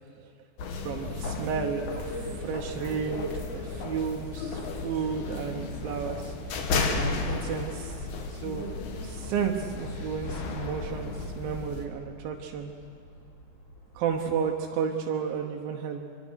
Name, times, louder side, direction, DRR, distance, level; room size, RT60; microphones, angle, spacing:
sound 1, 0.6-11.9, left 3 dB, 65° left, 2.0 m, -34 dB
voice 1, 0.8-6.3 6.9-8.7 9.0-12.7 14.0-16.1, right 7 dB, 75° right, 2 dB, 2.2 m, -32 dB
sound 2, 4.3-14.3, right 1 dB, 25° left, 4.3 m, -54 dB
24.5 x 24.0 x 6.4 m, 2.6 s
omnidirectional pair, 5.6 m